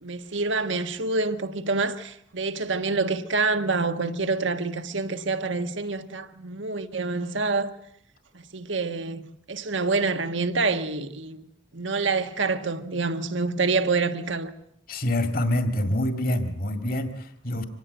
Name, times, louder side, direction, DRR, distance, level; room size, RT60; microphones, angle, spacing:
voice 1, 0.0-7.7 8.3-11.4 11.7-14.5, right 3 dB, 75° right, 1.4 m, -27 dB
voice 2, 14.9-17.6, left 1 dB, 45° left, 2.1 m, -26 dB
25.5 x 18.5 x 8.0 m
head